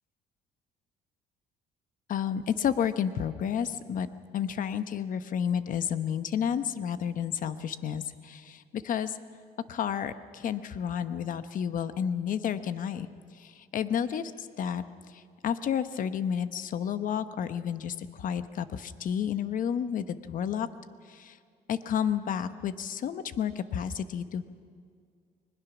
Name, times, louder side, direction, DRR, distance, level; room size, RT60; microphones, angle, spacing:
voice 1, 2.1-4.1 4.3-9.2 9.7-13.1 13.4-14.8 15.1-20.7 21.1-21.4 21.7-24.4, left 8 dB, 50° left, 12 dB, 1.0 m, -31 dB
22.5 x 20.5 x 6.1 m, 2.1 s
cardioid pair, 110°, 17 cm